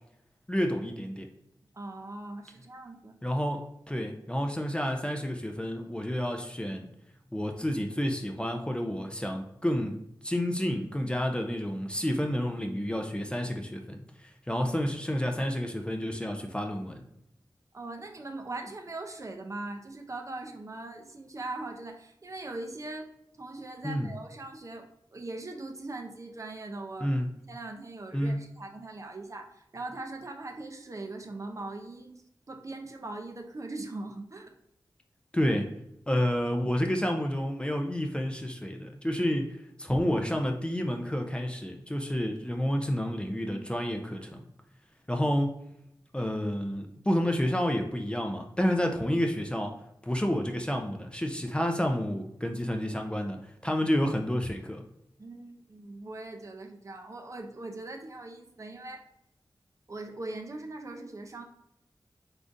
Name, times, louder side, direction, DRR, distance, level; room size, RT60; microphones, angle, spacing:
voice 1, 0.5-1.3 3.2-6.9 7.3-17.1 23.8-24.1 27.0-27.3 28.1-28.4 35.3-35.7 36.1-44.4 45.1-45.5 46.1-49.8 50.0-54.8, equal, 10° left, 3 dB, 0.4 m, -30 dB
voice 2, 1.7-3.2 17.7-23.1 23.4-27.1 27.5-32.1 32.5-34.5 55.2-59.0 59.9-61.4, right 2 dB, 40° right, 3 dB, 0.5 m, -40 dB
3.8 x 3.5 x 2.5 m, 0.78 s
wide cardioid pair, 80°, 8 cm